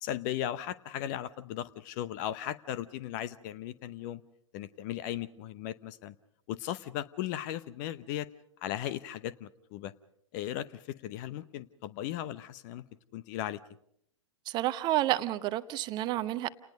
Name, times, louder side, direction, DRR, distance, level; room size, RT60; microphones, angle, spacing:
voice 1, 0.0-4.2 4.5-6.1 6.5-8.3 8.6-9.9 10.3-12.8 13.1-13.6, left 12 dB, 35° left, 0.9 m, -37 dB
voice 2, 14.5-16.5, right 15 dB, 25° right, 0.9 m, -30 dB
29.0 x 19.5 x 5.3 m
figure-of-eight pair, 105°, 17 cm